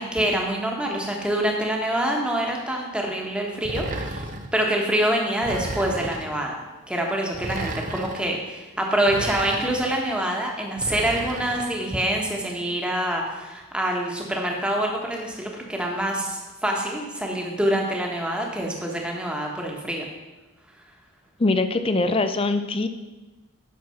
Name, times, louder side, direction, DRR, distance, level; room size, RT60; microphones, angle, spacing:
voice 1, 0.0-4.2 4.5-6.6 6.9-20.1, right 1 dB, 5° right, 0 dB, 1.3 m, -26 dB
sound 1, 3.7-4.5 5.4-6.3 7.3-8.2 9.1-10.0 10.8-11.7, right 2 dB, 40° right, 0.8 m, -32 dB
voice 2, 21.4-22.9, left 2 dB, 25° left, 10 dB, 0.5 m, -22 dB
9.3 x 6.2 x 5.8 m, 1.1 s
head